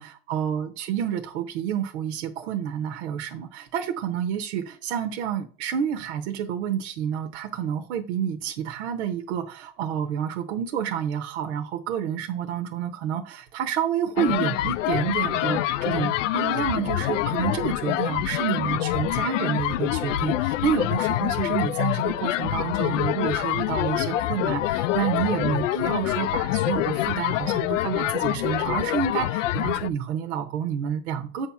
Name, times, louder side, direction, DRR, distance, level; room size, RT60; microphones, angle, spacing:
voice 1, 0.0-31.5, right 8 dB, 60° right, 5 dB, 0.8 m, -29 dB
sound 1, 14.2-29.9, left 14 dB, 80° left, 0.5 m, -26 dB
7.8 x 2.9 x 5.7 m, 0.42 s
supercardioid pair, 155°, 37 cm